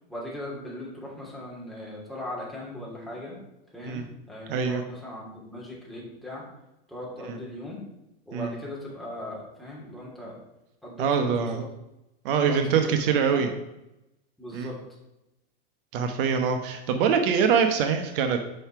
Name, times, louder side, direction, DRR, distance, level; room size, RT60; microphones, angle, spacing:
voice 1, 0.1-3.3 3.7-6.4 6.9-7.8 8.3-10.4 10.8-11.7 12.5-13.0 13.3-13.5 14.4-14.8, left 1 dB, ahead, -6 dB, 2.9 m, -39 dB
voice 2, 4.5-4.8 7.3-7.4 8.3-8.5 11.0-11.6 12.2-13.5 14.5-14.7 15.9-18.4, right 6 dB, 65° right, 6 dB, 0.9 m, -24 dB
5.6 x 5.6 x 5.8 m, 0.90 s
supercardioid pair, 135°, 29 cm